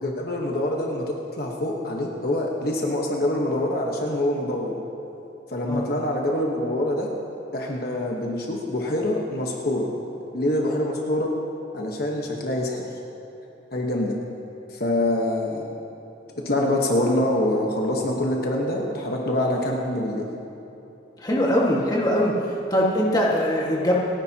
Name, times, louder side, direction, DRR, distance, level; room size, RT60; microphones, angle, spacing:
voice 1, 0.0-4.7 5.5-7.1 7.5-9.9 10.3-11.3 11.7-12.8 13.7-14.1 14.7-15.7 16.4-20.3, left 1 dB, 55° left, -1 dB, 1.2 m, -25 dB
voice 2, 21.2-22.3 22.7-23.9, equal, 20° left, -4 dB, 1.7 m, -22 dB
29.0 x 10.5 x 2.9 m, 2.9 s
head